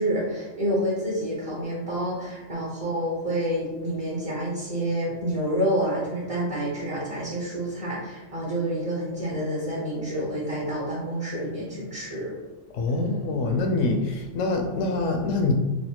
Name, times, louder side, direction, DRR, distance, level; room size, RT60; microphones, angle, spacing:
voice 1, 0.0-12.3 12.9-13.2, right 1 dB, 35° right, -6 dB, 0.7 m, -28 dB
voice 2, 12.7-15.5, left 3 dB, 75° left, 3 dB, 0.9 m, -25 dB
3.2 x 2.5 x 2.8 m, 1.1 s
omnidirectional pair, 1.3 m